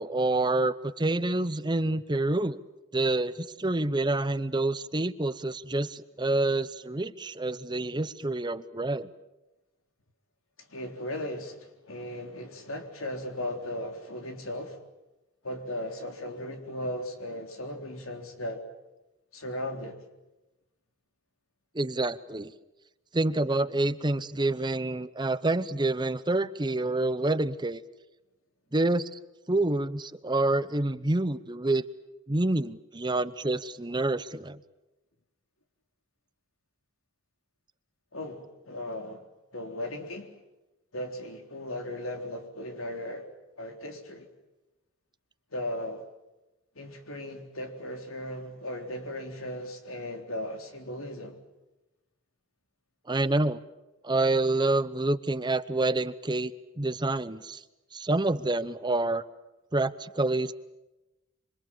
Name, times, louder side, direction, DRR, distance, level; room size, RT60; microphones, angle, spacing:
voice 1, 0.0-2.6 2.9-9.1 21.7-22.5 23.1-27.8 28.7-29.2 29.5-31.8 32.3-34.6 53.1-53.6 54.0-56.5 56.8-57.6 57.9-59.2 59.7-60.5, right 2 dB, 20° right, 0.8 m, -27 dB
voice 2, 10.7-14.8 15.4-18.7 19.3-20.0 38.1-39.3 39.5-40.3 40.9-43.3 43.6-44.3 45.5-46.0 46.8-51.4, left 1 dB, 85° left, 3.7 m, -37 dB
26.5 x 25.0 x 7.4 m
head